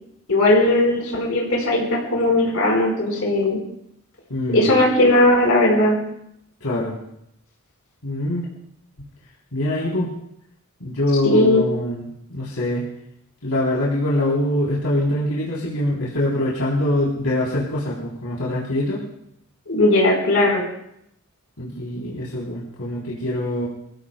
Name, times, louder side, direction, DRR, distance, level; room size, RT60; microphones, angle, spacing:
voice 1, 0.3-3.6 4.5-6.0 11.2-11.6 19.7-20.6, left 1 dB, 70° left, -1 dB, 4.7 m, -18 dB
voice 2, 4.3-4.7 6.6-6.9 8.0-8.4 9.5-10.1 10.8-12.9 13.4-19.0 21.6-23.7, left 1 dB, 85° left, -6 dB, 3.7 m, -24 dB
25.0 x 15.5 x 2.3 m, 0.75 s
head